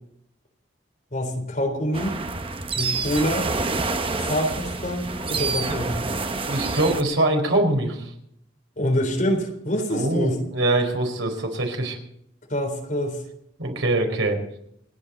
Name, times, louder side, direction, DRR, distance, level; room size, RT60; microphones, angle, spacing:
voice 1, 1.1-2.2 2.8-3.5 4.2-5.0 5.3-6.0 8.8-10.4 12.5-13.2, equal, 40° left, 2 dB, 4.0 m, -25 dB
sound 1, 1.9-7.0, right 3 dB, 30° right, 0.9 m, -27 dB
voice 2, 6.3-8.1 9.9-12.0 13.6-14.4, right 2 dB, 85° right, 3 dB, 4.5 m, -23 dB
28.5 x 9.9 x 4.2 m, 0.73 s
head